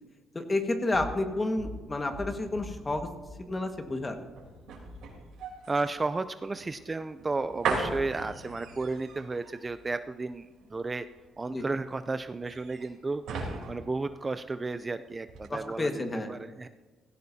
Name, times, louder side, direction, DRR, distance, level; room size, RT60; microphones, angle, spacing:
voice 1, 0.3-3.1 3.4-4.2 11.5-11.6 15.5-16.3, left 2 dB, 25° left, 5 dB, 1.6 m, -30 dB
sound 1, 0.6-14.9 15.2-15.5, right 4 dB, 85° right, 3.4 m, -39 dB
voice 2, 5.7-11.1 11.4-16.7, right 3 dB, 25° right, 11 dB, 0.4 m, -33 dB
16.5 x 16.0 x 2.8 m, 1.3 s
cardioid pair, 90°, 0 cm